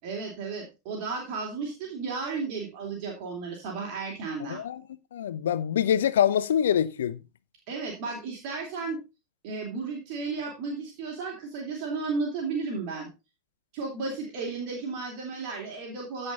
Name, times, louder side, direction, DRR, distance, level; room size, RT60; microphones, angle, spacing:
voice 1, 0.0-4.6 7.7-9.0 9.4-13.1 13.7-16.3, right 4 dB, 45° right, 3.5 m, -33 dB
voice 2, 4.5-4.8 5.1-7.2, left 9 dB, 60° left, 0.9 m, -25 dB
15.5 x 5.4 x 4.1 m
figure-of-eight pair, 90°, 0 cm